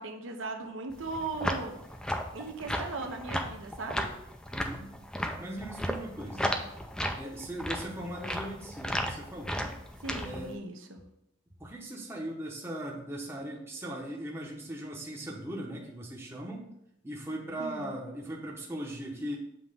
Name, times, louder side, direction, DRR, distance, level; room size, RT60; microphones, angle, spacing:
voice 1, 0.0-1.8 2.3-4.1 10.0-11.0 17.6-17.9, right 3 dB, 70° right, 4 dB, 0.9 m, -38 dB
sound 1, 0.9-10.5, equal, 5° left, 0.4 m, -35 dB
voice 2, 4.5-4.9 5.2-6.6 7.2-9.7 10.2-10.5 11.6-16.7 17.0-19.4, right 1 dB, 10° right, -3 dB, 0.9 m, -39 dB
7.6 x 3.0 x 5.2 m, 0.77 s
head